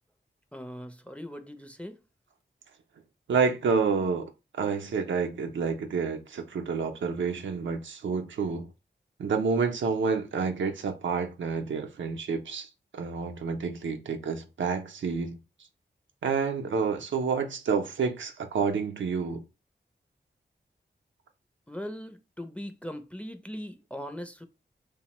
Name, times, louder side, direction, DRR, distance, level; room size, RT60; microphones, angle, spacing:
voice 1, 0.5-2.0 21.7-24.5, equal, 5° left, 0.4 m, -40 dB
voice 2, 3.3-4.3 4.6-8.7 9.2-15.4 16.2-19.4, right 5 dB, 80° right, 0.5 m, -29 dB
2.8 x 2.0 x 2.9 m
cardioid pair, 45°, 19 cm